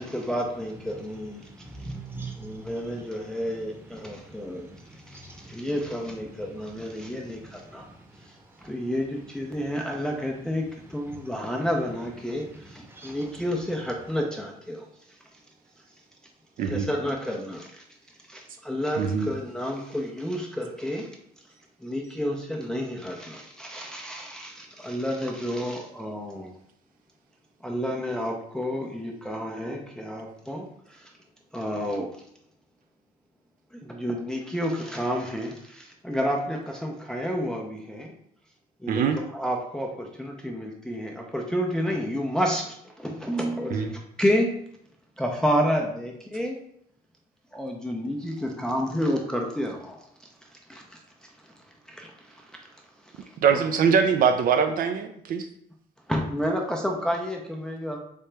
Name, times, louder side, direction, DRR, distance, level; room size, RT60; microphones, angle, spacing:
voice 1, 0.0-1.4 1.8-1.9 2.4-4.7 5.1-7.9 8.6-10.6 10.9-14.8 16.6-17.8 18.3-21.1 21.8-26.5 27.6-31.1 31.5-32.1 33.8-38.1 38.8-44.5 45.2-46.6 47.5-50.0 50.7-51.0 51.9-52.4 53.2-53.3 53.5-53.6 56.1-58.0, equal, 5° left, 0.5 m, -30 dB
voice 2, 1.4-5.7 6.6-8.8 10.8-11.6 12.3-13.3, right 2 dB, 15° right, 0.8 m, -45 dB
voice 3, 16.6-16.9 19.0-19.3 38.9-39.2 43.7-43.9 53.4-55.5, right 6 dB, 55° right, 0.4 m, -22 dB
3.3 x 2.8 x 3.3 m
cardioid pair, 110°, 17 cm